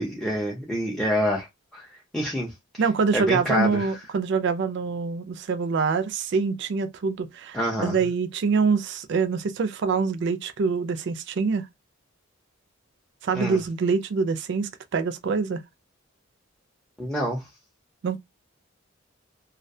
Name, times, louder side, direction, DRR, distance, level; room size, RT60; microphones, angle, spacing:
voice 1, 0.0-1.5 1.7-1.8 2.1-2.5 3.1-3.9 7.5-8.0 13.3-13.6 17.0-17.4, equal, ahead, 0.5 m, -26 dB
voice 2, 2.8-11.7 13.2-15.6 18.0-18.2, right 5 dB, 60° right, 0.4 m, -25 dB
2.2 x 2.1 x 2.6 m
head